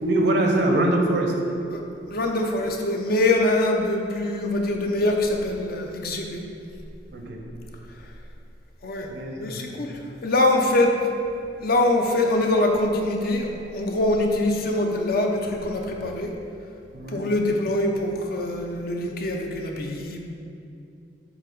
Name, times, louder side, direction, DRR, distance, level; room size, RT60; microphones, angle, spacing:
voice 1, 0.0-1.3 7.1-7.4 9.1-9.7 16.9-17.2, right 1 dB, 70° right, 2 dB, 0.8 m, -23 dB
voice 2, 2.1-6.4 7.9-8.1 8.8-9.1 9.4-11.0 11.6-16.3 17.1-20.2, left 2 dB, 60° left, 2 dB, 0.7 m, -24 dB
8.0 x 2.8 x 5.3 m, 2.5 s
head